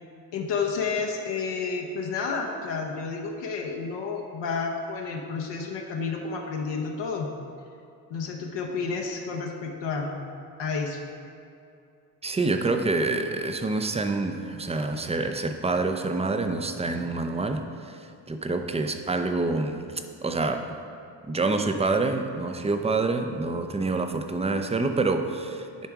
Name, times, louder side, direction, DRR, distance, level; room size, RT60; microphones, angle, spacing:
voice 1, 0.3-7.3 8.1-10.1 10.6-11.0, left 5 dB, 70° left, 1 dB, 0.9 m, -30 dB
voice 2, 12.2-17.9 18.3-19.8 20.2-20.8 21.3-25.9, right 3 dB, 15° right, 7 dB, 0.6 m, -27 dB
10.5 x 3.5 x 4.7 m, 2.5 s
supercardioid pair, 55°, 44 cm